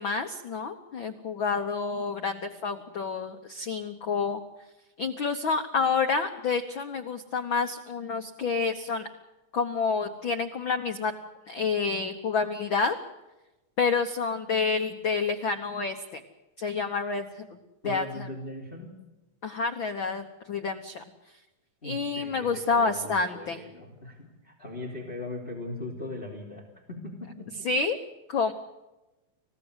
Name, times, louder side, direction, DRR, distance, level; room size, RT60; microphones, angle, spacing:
voice 1, 0.0-4.4 5.0-9.1 9.5-11.1 11.5-13.0 13.8-16.2 16.6-18.3 19.4-21.0 21.8-23.6 27.6-28.0 28.3-28.5, left 4 dB, 90° left, 6 dB, 1.0 m, -29 dB
voice 2, 17.8-18.9 21.8-27.7 28.5-28.6, left 2 dB, 15° left, 0 dB, 2.8 m, -39 dB
29.0 x 16.0 x 8.1 m, 1.0 s
omnidirectional pair, 4.0 m